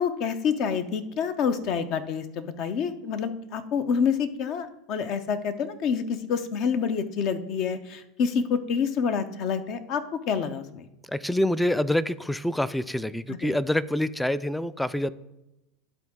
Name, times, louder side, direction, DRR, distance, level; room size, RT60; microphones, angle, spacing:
voice 1, 0.0-10.8 13.3-13.6, left 6 dB, 55° left, 10 dB, 0.6 m, -28 dB
voice 2, 11.1-15.1, left 1 dB, 5° left, 17 dB, 0.3 m, -26 dB
11.5 x 3.9 x 3.6 m, 0.94 s
hypercardioid pair, 85°, 0 cm